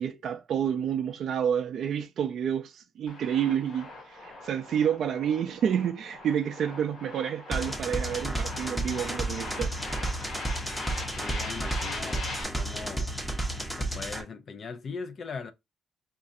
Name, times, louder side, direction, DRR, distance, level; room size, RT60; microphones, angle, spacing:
voice 1, 0.0-9.7, right 8 dB, 65° right, 0.3 m, -29 dB
sound 1, 3.1-12.4, left 2 dB, 80° left, 1.5 m, -41 dB
sound 2, 7.5-14.2, right 1 dB, 5° left, 0.8 m, -32 dB
voice 2, 11.1-13.1 13.8-15.5, left 5 dB, 50° left, 0.5 m, -40 dB
5.1 x 2.4 x 2.6 m
cardioid pair, 90°, 0 cm